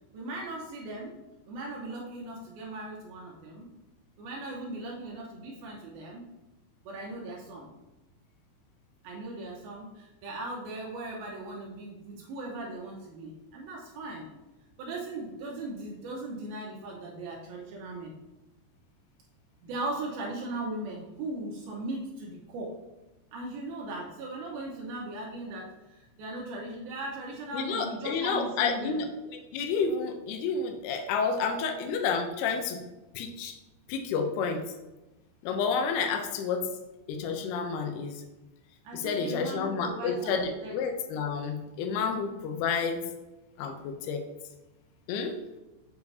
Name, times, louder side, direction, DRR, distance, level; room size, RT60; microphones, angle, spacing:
voice 1, 0.1-1.2 1.5-3.7 4.2-6.3 6.8-7.7 9.0-14.3 14.8-18.1 19.6-22.7 23.3-29.0 36.5-36.6 38.8-40.8, right 2 dB, 90° right, -3 dB, 2.1 m, -38 dB
voice 2, 27.5-29.1 29.5-32.8 33.2-33.5 33.9-34.6 35.4-36.6 37.1-38.2 38.9-43.0 43.6-44.2 45.1-45.3, left 5 dB, 90° left, 4 dB, 2.2 m, -30 dB
6.9 x 6.7 x 2.7 m, 1.0 s
omnidirectional pair, 5.5 m